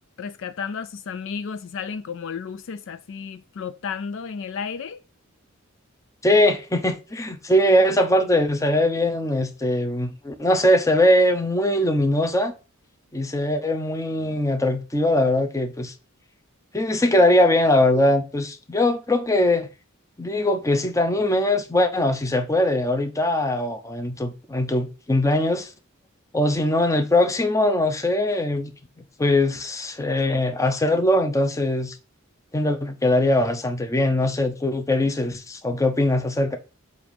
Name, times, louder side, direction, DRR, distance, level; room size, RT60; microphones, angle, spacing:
voice 1, 0.2-5.0, left 6 dB, 60° left, 0.4 m, -33 dB
voice 2, 6.2-12.5 13.1-15.9 16.7-19.7 20.2-25.7 26.3-28.7 29.2-32.0 32.5-36.6, left 1 dB, 15° left, 0.7 m, -21 dB
7.6 x 2.6 x 5.2 m
head